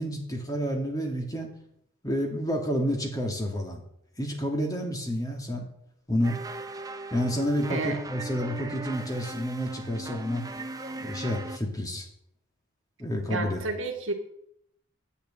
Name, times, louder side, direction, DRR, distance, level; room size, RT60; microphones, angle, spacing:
voice 1, 0.0-1.5 2.0-3.8 4.2-5.6 6.1-6.4 7.1-10.4 11.0-12.1 13.0-13.6, equal, 15° left, 1 dB, 2.3 m, -29 dB
sound 1, 6.2-11.6, right 2 dB, 15° right, 0.8 m, -38 dB
voice 2, 7.7-8.0 13.3-14.1, right 3 dB, 70° right, 3 dB, 1.9 m, -31 dB
10.0 x 7.2 x 9.2 m, 0.73 s
head